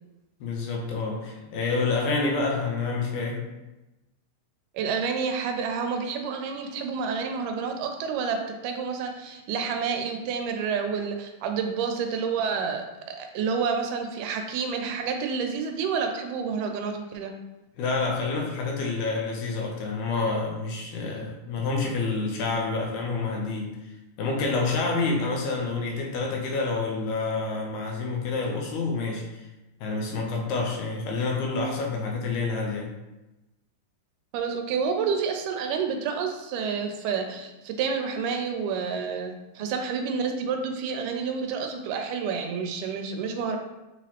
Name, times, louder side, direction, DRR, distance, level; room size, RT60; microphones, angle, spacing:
voice 1, 0.4-3.5 17.8-23.8 24.2-29.5 29.8-32.9 39.6-39.7, left 3 dB, 75° left, 0 dB, 2.1 m, -28 dB
voice 2, 4.7-17.3 34.3-43.6, right 5 dB, 85° right, 4 dB, 2.1 m, -29 dB
6.2 x 3.0 x 2.8 m, 1.0 s
omnidirectional pair, 3.7 m